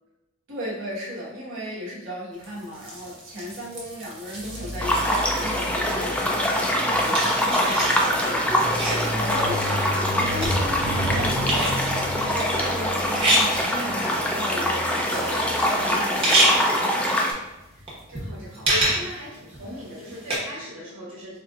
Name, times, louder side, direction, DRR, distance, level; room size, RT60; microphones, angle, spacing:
voice 1, 0.5-16.7, equal, 60° right, -5 dB, 1.2 m, -35 dB
sound 1, 2.4-5.7 6.1-11.1 11.3-12.1 12.9-13.9 14.2-14.3 14.7-15.7 16.1-16.6 17.0-17.1 17.7-20.4, right 1 dB, 25° right, 1.0 m, -27 dB
sound 2, 4.4-16.0 16.7-17.0, left 1 dB, 70° left, 1.0 m, -34 dB
sound 3, 4.8-17.3, equal, 5° left, 0.4 m, -24 dB
voice 2, 17.7-21.4, left 1 dB, 90° right, -8 dB, 1.4 m, -38 dB
4.7 x 2.7 x 2.4 m, 0.98 s
head